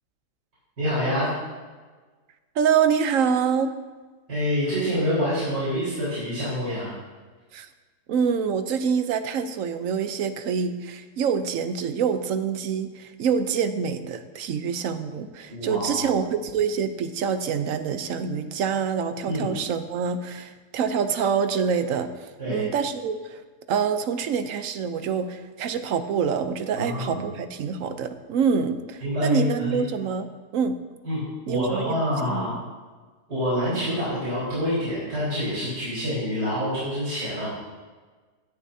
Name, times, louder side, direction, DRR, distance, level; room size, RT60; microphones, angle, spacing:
voice 1, 0.8-1.3 4.3-7.0 15.5-16.2 19.3-19.6 22.4-22.6 26.7-27.2 29.0-29.8 31.0-32.5 33.3-37.5, equal, 85° right, -11 dB, 4.9 m, -27 dB
voice 2, 2.6-3.7 7.5-7.7 8.1-22.1 22.5-23.4 23.7-30.3 30.5-30.8 31.5-32.0 32.3-32.6, right 6 dB, 60° right, 10 dB, 1.0 m, -26 dB
17.0 x 10.5 x 2.8 m, 1.4 s
omnidirectional pair, 1.7 m